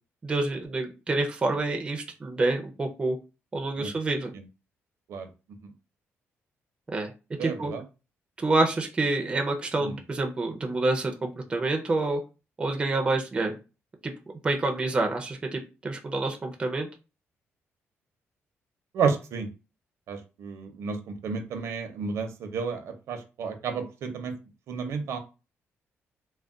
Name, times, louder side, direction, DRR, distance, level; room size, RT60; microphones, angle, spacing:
voice 1, 0.2-3.2 3.5-4.3 6.9-7.1 7.4-7.7 8.4-12.2 12.6-13.6 14.0-14.1 14.4-16.9, right 2 dB, 20° right, 3 dB, 0.4 m, -27 dB
voice 2, 7.4-7.8 9.8-10.0 18.9-19.5 20.1-24.3 24.7-25.2, right 5 dB, 75° right, 6 dB, 0.6 m, -31 dB
2.3 x 2.2 x 3.6 m, 0.30 s
cardioid pair, 150°, 5 cm